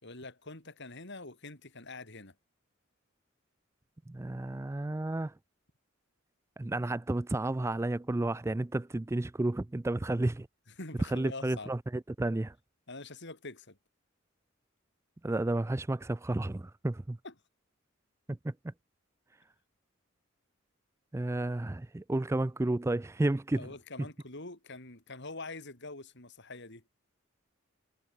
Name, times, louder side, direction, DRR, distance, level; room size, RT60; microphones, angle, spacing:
voice 1, 0.0-2.3 10.8-11.7 12.9-13.8 17.2-17.3 23.5-26.8, left 2 dB, 60° left, 5.4 m, -45 dB
voice 2, 4.1-5.3 6.6-10.5 11.1-12.6 15.2-17.2 18.3-18.7 21.1-23.7, right 2 dB, 15° right, 0.4 m, -32 dB
head